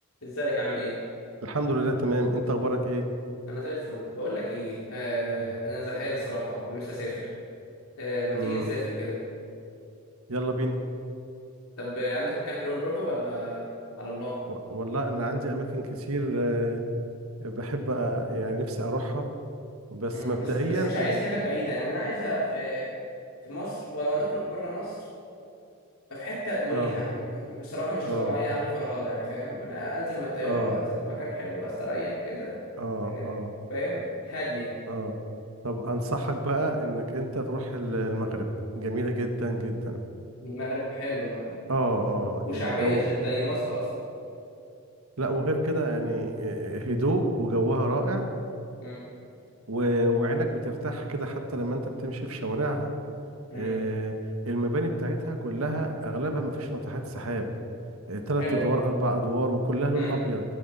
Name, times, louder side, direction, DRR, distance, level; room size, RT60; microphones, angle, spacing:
voice 1, 0.2-0.9 3.5-7.3 8.0-9.2 11.8-13.6 14.0-14.3 20.1-22.9 23.4-25.0 26.1-32.7 33.0-33.3 33.7-34.7 40.4-41.6 42.5-43.9 48.8-49.0 53.5-53.7 58.4-58.7 59.9-60.1, equal, 75° left, -6 dB, 2.7 m, -31 dB
voice 2, 1.4-3.1 5.4-5.5 8.3-8.7 10.3-10.8 14.5-16.8 17.4-19.3 19.9-21.1 26.7-27.0 28.1-28.4 30.4-30.8 32.8-33.5 34.9-35.1 35.6-38.5 38.7-40.0 41.7-43.0 45.2-48.3 49.7-52.9 53.5-54.2 54.4-57.5 58.1-60.4, right 1 dB, 80° right, 4 dB, 1.5 m, -28 dB
16.0 x 13.0 x 4.3 m, 2.6 s
head